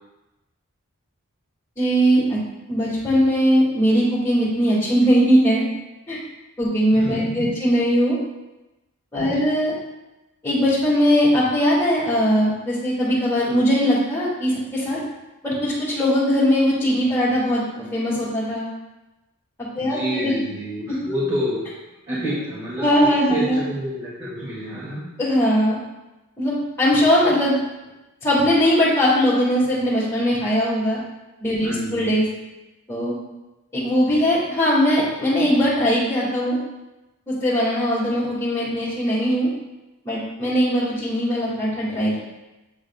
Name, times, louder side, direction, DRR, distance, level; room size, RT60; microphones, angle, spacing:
voice 1, 1.8-2.4 2.7-5.6 6.1-6.2 6.6-8.2 9.1-9.7 10.4-15.0 15.4-18.7 19.8-20.3 22.1-22.2 22.8-23.6 25.2-25.8 26.4-27.5 28.2-31.0 31.4-32.2 32.9-33.1 33.7-36.6 37.3-39.5 40.0-42.2, equal, 15° left, -12 dB, 2.1 m, -20 dB
voice 2, 6.9-7.5 9.2-9.4 19.8-21.6 22.1-25.1 31.6-32.2, equal, 25° right, -12 dB, 2.5 m, -29 dB
9.1 x 6.6 x 2.4 m, 1.0 s
head